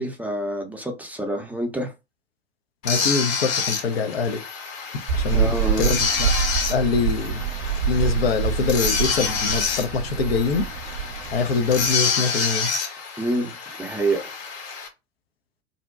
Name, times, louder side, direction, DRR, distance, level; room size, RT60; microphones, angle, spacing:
voice 1, 0.0-1.9 5.3-5.8 13.2-13.5 13.8-14.4, right 1 dB, 5° right, 0.5 m, -27 dB
voice 2, 2.8-4.4 5.2-6.3 6.7-7.4 7.9-10.6 11.3-12.7, left 5 dB, 80° left, 0.5 m, -24 dB
sound 1, 2.8-14.9, left 5 dB, 45° left, 0.8 m, -28 dB
sound 2, 5.1-11.9, right 7 dB, 55° right, 0.5 m, -26 dB
2.6 x 2.1 x 2.3 m
figure-of-eight pair, 75°, 30 cm